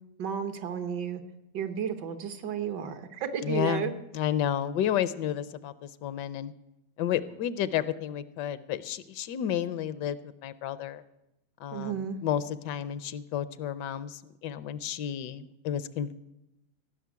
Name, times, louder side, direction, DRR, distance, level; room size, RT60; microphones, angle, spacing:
voice 1, 0.2-1.2 1.5-3.9 11.7-12.2, right 7 dB, 75° right, 9 dB, 1.7 m, -32 dB
voice 2, 3.4-6.5 7.0-11.0 11.6-16.1, left 10 dB, 75° left, 16 dB, 1.3 m, -31 dB
16.0 x 6.3 x 9.4 m, 0.89 s
omnidirectional pair, 1.9 m